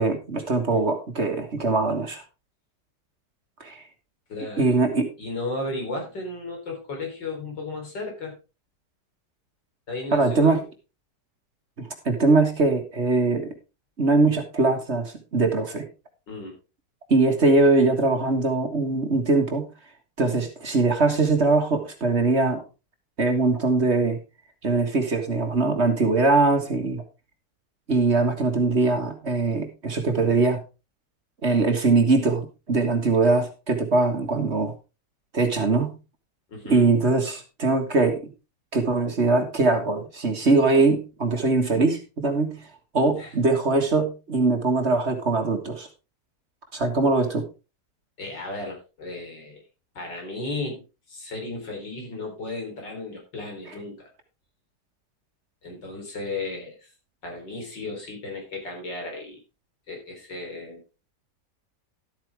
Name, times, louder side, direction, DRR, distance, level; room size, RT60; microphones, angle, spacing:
voice 1, 0.0-2.2 3.6-3.8 4.6-5.1 10.1-10.6 11.8-13.5 14.0-15.9 17.1-19.7 20.2-22.6 23.2-24.2 24.6-27.0 27.9-30.6 31.4-34.7 35.3-36.0 36.7-38.3 38.7-42.6 42.9-45.9 46.7-47.5, right 3 dB, 40° right, 5 dB, 1.9 m, -22 dB
voice 2, 4.3-4.8 5.2-8.3 9.9-10.7 16.3-16.6 36.5-36.9 43.2-43.4 48.2-49.6 49.9-50.8 51.1-54.1 55.6-56.9 57.2-59.4 59.9-60.8, left 2 dB, 85° left, 2 dB, 4.5 m, -34 dB
12.5 x 8.7 x 3.5 m, 0.29 s
omnidirectional pair, 1.9 m